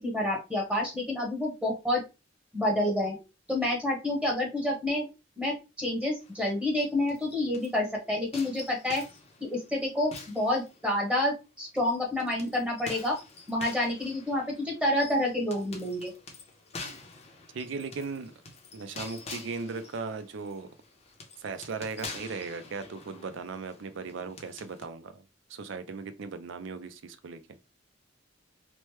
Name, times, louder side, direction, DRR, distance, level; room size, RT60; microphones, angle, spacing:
voice 1, 0.0-2.0 2.5-3.2 3.5-5.1 5.4-9.0 9.4-13.2 13.5-16.1, left 1 dB, 5° right, 1.0 m, -28 dB
sound 1, 6.2-7.8 8.3-11.2 11.8-24.8, left 3 dB, 35° left, 0.7 m, -47 dB
voice 2, 17.5-18.3 18.7-20.7 21.4-25.2 25.5-27.4, right 4 dB, 70° right, 0.5 m, -37 dB
3.1 x 2.1 x 3.1 m
head